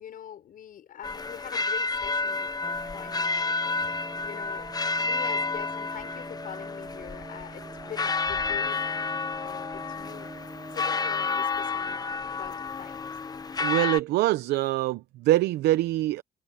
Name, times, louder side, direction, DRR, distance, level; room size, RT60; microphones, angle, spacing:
voice 1, 0.0-4.7 5.0-9.0 9.4-13.1, left 10 dB, 55° left, 6.4 m, -44 dB
Campanes St Pere, 1.0-14.0, left 4 dB, 25° left, 0.9 m, -30 dB
sound 1, 2.6-11.3, right 3 dB, 20° right, 4.8 m, -45 dB
voice 2, 13.6-16.2, right 15 dB, 80° right, 0.8 m, -24 dB
cardioid pair, 110°, 17 cm